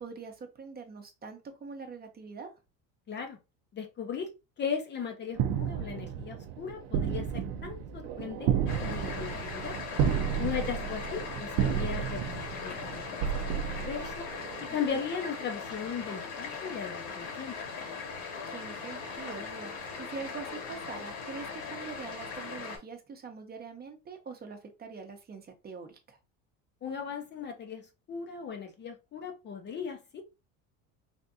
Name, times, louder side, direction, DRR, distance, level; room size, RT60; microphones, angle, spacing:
voice 1, 0.0-2.5 10.8-10.9 14.7-15.0 18.5-26.2, right 5 dB, 25° right, 0.7 m, -44 dB
voice 2, 3.1-3.4 3.7-4.3 4.6-9.8 10.4-13.2 13.5-14.2 14.6-17.6 26.8-27.8 28.1-30.2, left 7 dB, 30° left, 0.5 m, -37 dB
sound 1, 5.3-14.7, right 8 dB, 75° right, 0.5 m, -32 dB
sound 2, 8.7-22.8, left 5 dB, 85° left, 2.0 m, -40 dB
3.4 x 2.5 x 2.6 m
supercardioid pair, 115°, 35 cm